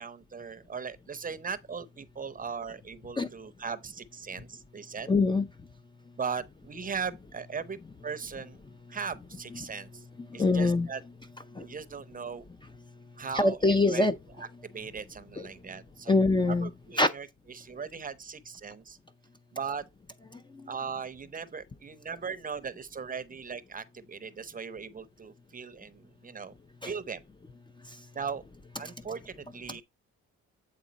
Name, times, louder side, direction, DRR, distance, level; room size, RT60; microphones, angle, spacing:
voice 1, 0.0-5.1 6.2-8.6 8.9-10.1 10.3-11.0 11.6-12.5 13.2-14.0 14.4-16.2 16.5-19.0 19.5-19.9 20.7-26.5 26.8-27.2 28.1-28.4 28.8-29.8, right 6 dB, 30° right, 0.7 m, -38 dB
voice 2, 5.1-5.5 10.4-10.9 11.6-11.7 13.3-14.1 15.4-15.5 16.1-16.7 17.0-17.1 26.8-26.9, left 2 dB, 15° left, 0.5 m, -23 dB
8.5 x 3.7 x 4.0 m
cardioid pair, 90°, 30 cm